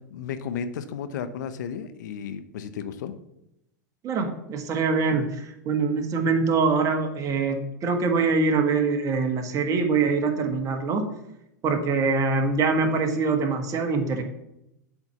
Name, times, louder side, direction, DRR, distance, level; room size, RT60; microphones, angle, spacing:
voice 1, 0.1-3.1, left 7 dB, 70° left, 11 dB, 0.8 m, -33 dB
voice 2, 4.0-11.0 11.6-14.2, right 4 dB, 35° right, 5 dB, 1.6 m, -24 dB
8.0 x 4.4 x 6.9 m, 0.83 s
hypercardioid pair, 110°, 10 cm